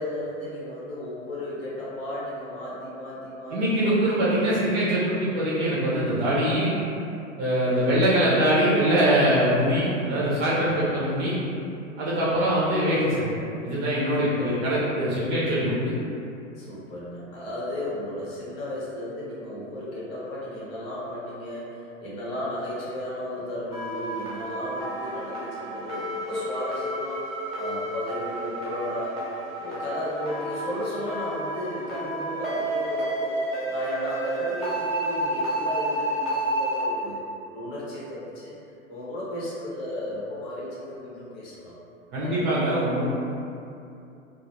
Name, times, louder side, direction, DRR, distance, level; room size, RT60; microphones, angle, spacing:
voice 1, 0.0-4.2 7.6-8.0 10.5-10.9 14.2-14.6 16.6-29.2 29.6-33.4 33.7-37.2 37.5-38.6 38.9-41.8 42.2-42.5, left 1 dB, 45° left, -7 dB, 0.9 m, -34 dB
voice 2, 3.5-6.7 7.4-11.3 12.0-13.2 13.6-15.7 42.1-43.0, right 1 dB, 25° right, -8 dB, 0.5 m, -23 dB
sound 1, 23.7-36.8, right 1 dB, ahead, 0.9 m, -31 dB
2.2 x 2.1 x 2.9 m, 2.7 s
figure-of-eight pair, 95°, 40 cm